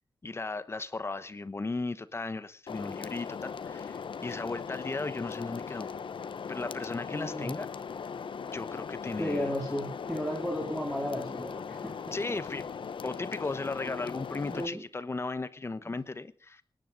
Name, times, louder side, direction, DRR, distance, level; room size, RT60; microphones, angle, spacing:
voice 1, 0.2-5.9 6.5-7.7 8.5-9.5 12.1-12.7 13.0-16.6, left 3 dB, 30° left, 13 dB, 1.0 m, -36 dB
sound 1, 2.7-14.7, left 6 dB, 70° left, 0.8 m, -39 dB
voice 2, 7.1-7.5 9.2-12.2 13.8-13.9 14.5-14.8 15.8-16.0, left 1 dB, 5° left, -2 dB, 2.6 m, -34 dB
25.0 x 10.0 x 5.2 m, 0.41 s
wide cardioid pair, 170°, 9 cm